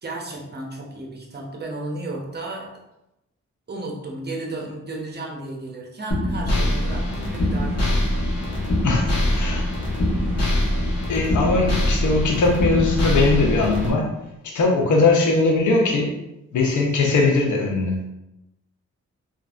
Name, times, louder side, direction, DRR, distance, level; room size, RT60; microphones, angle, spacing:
voice 1, 0.0-2.7 3.7-8.0, right 2 dB, 35° right, -1 dB, 0.8 m, -33 dB
sound 1, 6.1-13.9, left 1 dB, 55° left, 1.1 m, -23 dB
voice 2, 8.8-9.7 11.1-14.1 14.4-16.1 16.5-18.1, left 3 dB, 80° left, 0 dB, 0.7 m, -20 dB
3.1 x 2.5 x 2.4 m, 0.91 s
cardioid pair, 65°, 30 cm